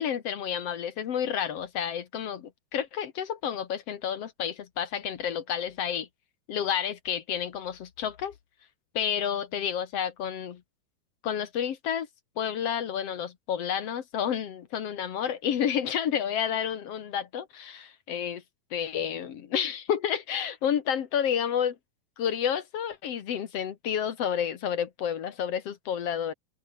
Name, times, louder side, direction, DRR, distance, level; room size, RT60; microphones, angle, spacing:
voice 1, 0.0-6.1 6.5-8.3 8.9-10.6 11.2-12.1 12.4-18.4 18.7-21.8 22.2-26.3, left 8 dB, 55° left, 1.9 m, -30 dB
open air
omnidirectional pair, 4.3 m